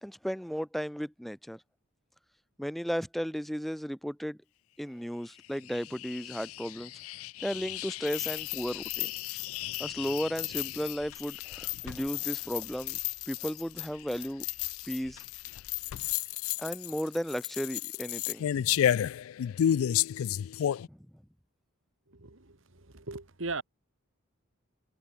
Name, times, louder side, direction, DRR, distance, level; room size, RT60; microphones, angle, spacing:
voice 1, 0.0-1.6 2.6-4.4 4.8-6.9 7.4-9.1 9.8-13.0 13.3-14.4 14.8-15.2 16.6-18.7 20.9-21.0, equal, ahead, 0.7 m, -34 dB
sound 1, 5.4-20.9, left 11 dB, 85° left, 0.3 m, -33 dB
voice 2, 22.1-23.6, right 3 dB, 65° right, 2.1 m, -39 dB
head